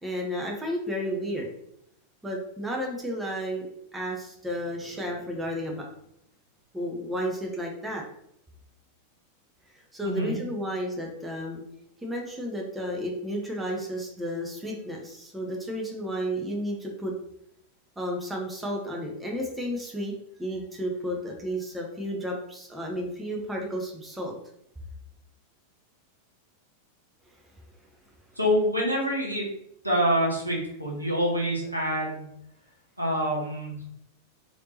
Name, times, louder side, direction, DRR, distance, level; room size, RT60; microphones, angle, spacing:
voice 1, 0.0-1.5 2.2-5.8 6.7-8.0 9.7-11.6 12.0-17.1 18.0-20.1 20.4-24.3, equal, 10° right, -1 dB, 0.7 m, -32 dB
voice 2, 10.0-10.4 28.4-29.5 29.8-32.3 33.0-33.8, equal, 85° right, -3 dB, 1.0 m, -26 dB
3.4 x 2.7 x 2.9 m, 0.76 s
figure-of-eight pair, 90°, 0 cm